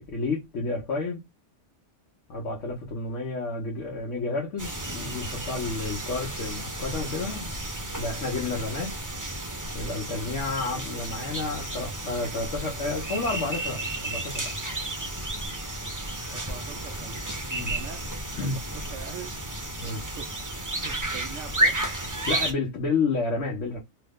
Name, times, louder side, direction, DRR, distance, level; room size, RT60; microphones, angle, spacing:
voice 1, 0.1-1.2 2.3-7.5 8.0-9.0 9.7-14.5 17.5-17.7 18.4-18.6 19.8-20.0 22.3-23.8, left 3 dB, 85° left, 1.2 m, -30 dB
sound 1, 4.6-22.5, right 1 dB, 20° right, 0.6 m, -32 dB
voice 2, 16.3-17.2 17.7-18.0 18.4-19.3 20.1-20.3 20.8-21.8, right 8 dB, 80° right, 0.9 m, -42 dB
3.2 x 2.0 x 3.5 m
omnidirectional pair, 1.2 m